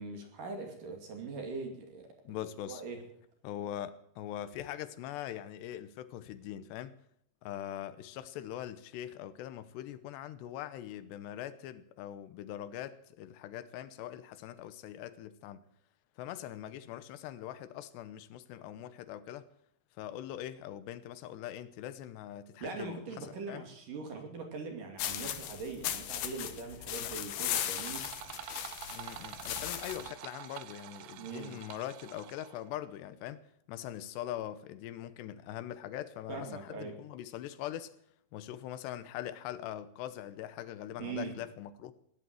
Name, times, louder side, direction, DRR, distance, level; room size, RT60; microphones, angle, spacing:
voice 1, 0.0-2.4 2.7-3.0 22.6-28.1 31.2-31.6 36.3-37.0 41.0-41.4, right 4 dB, 55° right, 3.9 m, -41 dB
voice 2, 2.2-2.8 3.4-6.9 7.4-15.6 16.2-19.5 20.0-23.6 27.0-27.3 28.9-33.4 33.7-37.9 38.3-41.9, left 12 dB, 85° left, 3.1 m, -42 dB
sound 1, 25.0-30.1, left 11 dB, 70° left, 2.5 m, -37 dB
sound 2, 27.7-32.7, right 12 dB, 80° right, 2.7 m, -47 dB
17.0 x 11.0 x 7.6 m
omnidirectional pair, 4.9 m